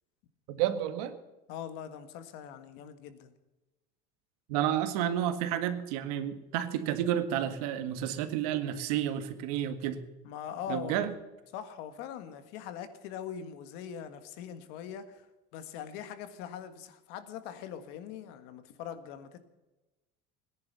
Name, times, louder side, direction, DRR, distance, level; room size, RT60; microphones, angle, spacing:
voice 1, 0.5-1.1 4.5-10.0 10.7-11.1, right 10 dB, 85° right, 9 dB, 1.8 m, -30 dB
voice 2, 1.5-3.3 10.2-11.0 11.5-15.3 15.5-19.4, left 9 dB, 60° left, 10 dB, 1.7 m, -42 dB
18.5 x 10.5 x 6.9 m, 1.1 s
cardioid pair, 175°, 19 cm